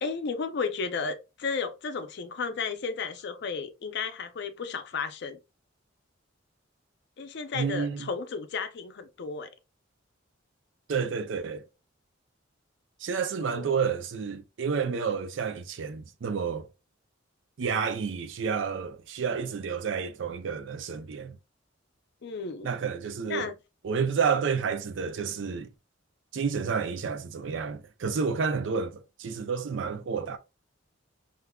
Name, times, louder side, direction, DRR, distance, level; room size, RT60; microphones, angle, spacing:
voice 1, 0.0-5.4 7.2-9.5 13.4-13.7 22.2-22.7 23.3-23.5, left 5 dB, 60° left, 0.5 m, -33 dB
voice 2, 7.5-8.1 10.9-11.7 13.0-16.7 17.6-21.4 22.6-23.5 23.8-25.7 26.3-30.4, right 6 dB, 70° right, 0.4 m, -30 dB
3.4 x 2.5 x 2.2 m
head